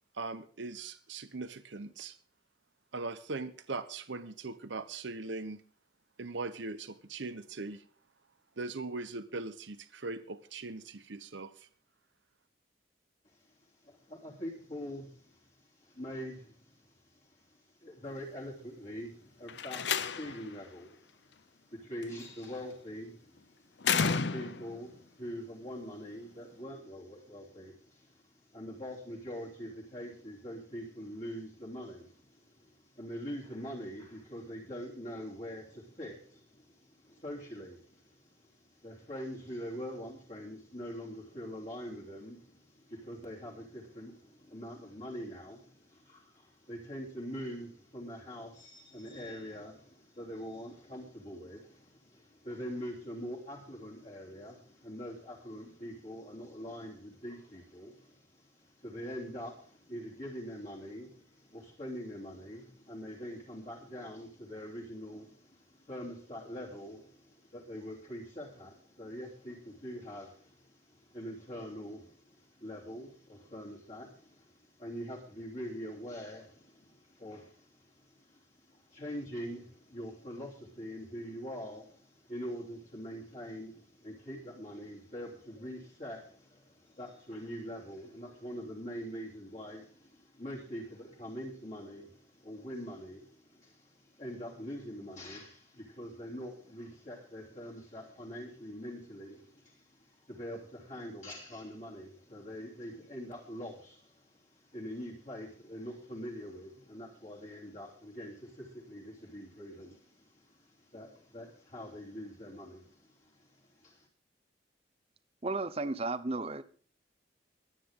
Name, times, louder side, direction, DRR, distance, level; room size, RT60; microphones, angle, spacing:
voice 1, 0.1-2.1 2.9-5.6 6.2-7.8 8.6-11.7, right 3 dB, 80° right, 11 dB, 1.0 m, -40 dB
voice 2, 13.2-114.1, equal, 40° left, -4 dB, 3.3 m, -44 dB
Slam, 19.5-20.5 22.0-22.5 23.8-24.8, left 6 dB, 70° left, 0.7 m, -31 dB
voice 3, 115.4-116.6, right 2 dB, 30° right, 13 dB, 0.8 m, -33 dB
23.5 x 9.2 x 3.8 m, 0.43 s
head